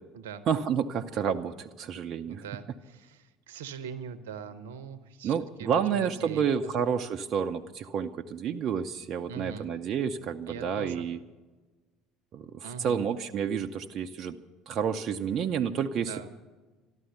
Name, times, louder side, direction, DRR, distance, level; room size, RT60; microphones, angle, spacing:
voice 1, 0.5-2.4 5.2-11.2 12.3-14.4 14.7-16.2, right 7 dB, 50° right, 5 dB, 0.6 m, -30 dB
voice 2, 2.3-5.3 5.6-6.7 9.3-9.7 10.5-11.1 12.6-13.0 16.0-16.3, right 7 dB, 75° right, 13 dB, 0.8 m, -42 dB
13.0 x 12.5 x 8.0 m, 1.3 s
figure-of-eight pair, 65°, 0 cm